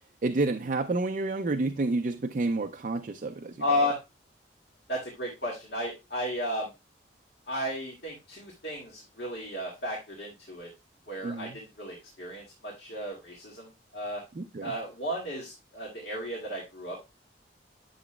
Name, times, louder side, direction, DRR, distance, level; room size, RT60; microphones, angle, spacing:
voice 1, 0.2-3.6 11.2-11.6 14.4-14.7, right 3 dB, 45° right, 0.4 m, -29 dB
voice 2, 3.6-4.0 4.9-6.7 7.5-10.7 11.1-14.2 14.6-17.0, left 1 dB, 65° left, 2.0 m, -34 dB
10.0 x 7.0 x 2.2 m
head